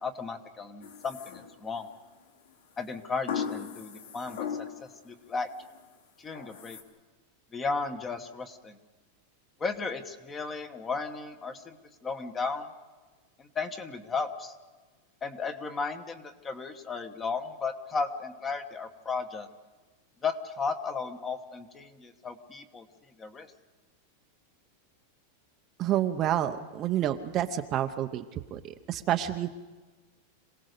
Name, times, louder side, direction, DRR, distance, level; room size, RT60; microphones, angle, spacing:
voice 1, 0.0-1.9 2.8-4.5 4.8-5.5 6.2-6.8 7.5-8.8 9.6-11.8 12.0-12.7 13.4-14.5 15.2-19.5 20.2-22.9 23.2-23.5, left 4 dB, 15° left, 9 dB, 1.1 m, -34 dB
sound 1, 0.8-1.9 3.3-5.0 5.4-5.8 6.4-6.8, left 7 dB, 85° left, 3.0 m, -37 dB
voice 2, 25.8-29.5, right 11 dB, 25° right, 7 dB, 0.7 m, -29 dB
26.5 x 18.0 x 6.6 m, 1.3 s
supercardioid pair, 170°, 0 cm